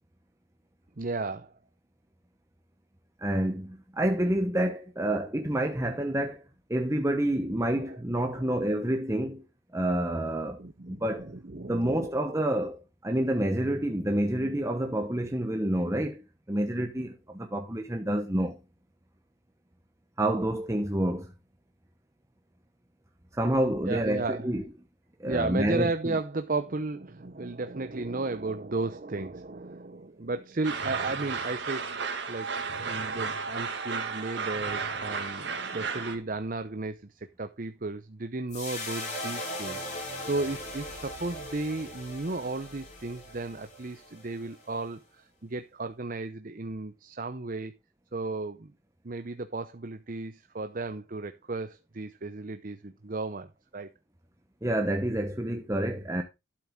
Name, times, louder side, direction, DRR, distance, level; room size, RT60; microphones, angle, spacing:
voice 1, 1.0-1.5 7.8-8.0 8.3-8.5 10.6-12.2 23.9-24.5 25.2-32.0 32.3-32.5 32.9-47.7 48.1-48.7 49.0-53.9, right 3 dB, 45° right, 0.7 m, -34 dB
voice 2, 3.2-6.4 6.7-9.4 9.7-11.3 11.7-16.2 16.5-18.6 20.2-21.3 23.3-24.6 25.2-26.2 54.6-56.2, right 1 dB, 15° right, 1.0 m, -28 dB
sound 1, 30.6-36.2, right 5 dB, 60° right, 2.3 m, -33 dB
sound 2, 38.5-44.9, left 1 dB, 35° left, 5.5 m, -39 dB
12.0 x 7.7 x 3.7 m
head